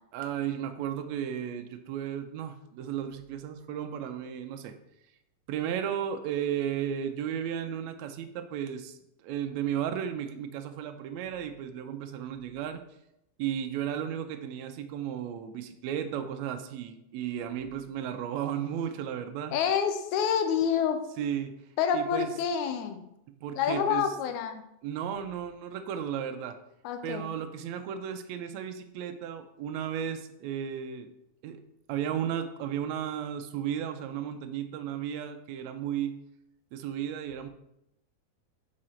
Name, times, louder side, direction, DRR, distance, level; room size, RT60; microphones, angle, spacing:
voice 1, 0.1-4.8 5.5-12.8 13.4-19.6 21.2-21.5 21.9-22.3 23.4-24.1 24.8-26.6 27.0-31.1 31.4-31.6 31.9-36.2 36.7-37.5, right 9 dB, 80° right, 7 dB, 1.8 m, -34 dB
voice 2, 19.5-21.0 21.8-23.0 23.6-24.6 26.8-27.3, left 7 dB, 85° left, 7 dB, 2.1 m, -27 dB
6.3 x 4.8 x 4.3 m, 0.80 s
omnidirectional pair, 3.3 m